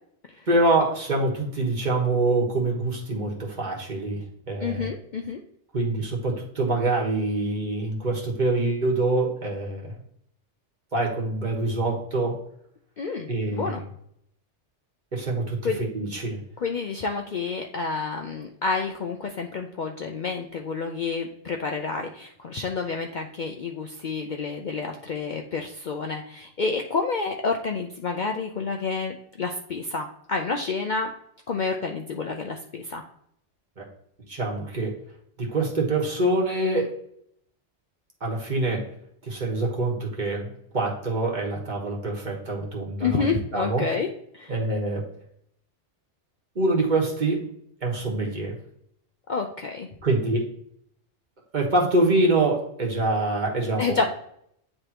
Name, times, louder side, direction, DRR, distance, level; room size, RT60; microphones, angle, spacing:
voice 1, 0.5-4.9 5.7-9.9 10.9-12.4 13.3-13.8 15.1-16.4 33.8-33.9 34.3-35.0 35.4-36.9 38.2-38.9 39.2-43.9 44.5-45.1 46.5-47.5 47.8-48.6 50.0-50.5 51.5-54.0, right 2 dB, 40° right, -2 dB, 1.5 m, -25 dB
voice 2, 4.6-5.4 13.0-13.8 15.6-15.8 16.6-31.1 31.5-33.0 43.0-44.1 44.3-44.5 49.3-49.9 53.8-54.1, left 4 dB, 55° left, 3 dB, 0.6 m, -29 dB
9.7 x 3.3 x 2.9 m, 0.71 s
omnidirectional pair, 1.2 m